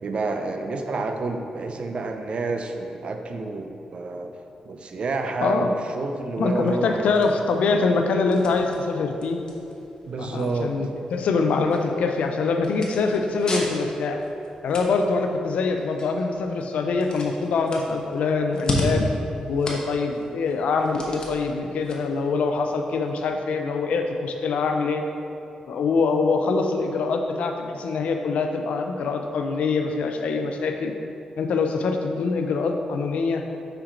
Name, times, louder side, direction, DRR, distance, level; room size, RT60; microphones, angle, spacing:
voice 1, 0.0-7.3 10.1-10.8, right 3 dB, 55° right, 6 dB, 0.5 m, -29 dB
sound 1, 6.3-23.3, left 1 dB, 40° left, 1.0 m, -36 dB
voice 2, 6.4-9.4 10.2-14.2 14.6-19.1 19.5-25.0 25.7-30.9 31.4-33.4, left 4 dB, 80° left, 4 dB, 0.5 m, -24 dB
5.7 x 4.5 x 3.8 m, 2.8 s
cardioid pair, 70°, 2 cm